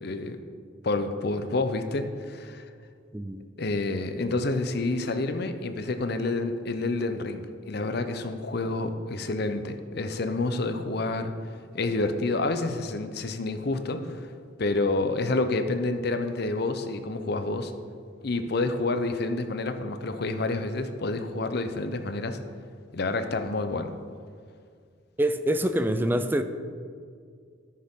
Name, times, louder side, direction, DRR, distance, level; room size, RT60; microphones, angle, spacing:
voice 1, 0.0-0.4 0.8-2.7 3.6-11.3 11.7-14.3 14.6-17.7 18.2-22.4 22.9-23.9, left 2 dB, 55° left, 8 dB, 0.6 m, -28 dB
voice 2, 25.2-26.4, right 1 dB, 10° right, 9 dB, 0.4 m, -25 dB
13.5 x 6.5 x 3.7 m, 2.1 s
head